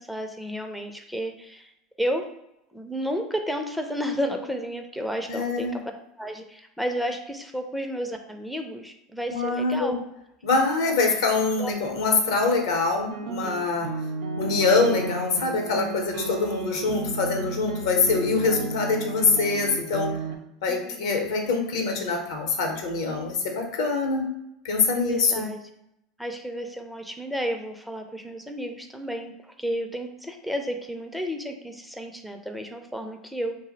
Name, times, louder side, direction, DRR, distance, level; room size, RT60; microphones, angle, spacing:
voice 1, 0.0-1.7 2.0-2.3 2.7-5.8 6.2-10.0 10.9-11.1 11.6-11.7 20.7-21.1 24.9-25.6 26.2-33.5, equal, ahead, 4 dB, 0.3 m, -32 dB
voice 2, 5.3-5.8 9.3-10.0 10.4-13.9 14.4-20.1 20.6-24.2 24.6-25.4, left 4 dB, 75° left, 2 dB, 0.6 m, -24 dB
sound 1, 13.1-20.4, right 3 dB, 80° right, 0.4 m, -33 dB
2.5 x 2.0 x 3.8 m, 0.84 s
hypercardioid pair, 90°, 2 cm